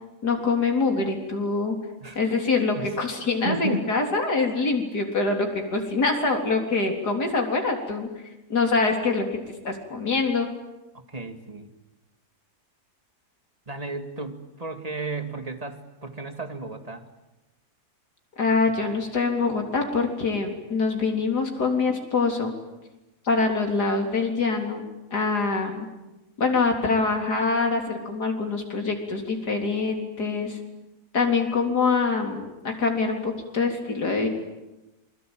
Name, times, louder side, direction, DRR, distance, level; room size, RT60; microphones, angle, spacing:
voice 1, 0.2-1.8 2.2-8.1 8.5-9.3 9.6-10.5 18.4-22.6 23.2-24.9 25.1-25.9 26.4-30.6 31.1-34.3, left 4 dB, 80° left, 3 dB, 4.3 m, -24 dB
voice 2, 3.4-4.0 10.9-11.7 13.7-17.1, right 2 dB, 25° right, 7 dB, 2.2 m, -33 dB
27.5 x 22.0 x 9.0 m, 1.0 s
omnidirectional pair, 1.7 m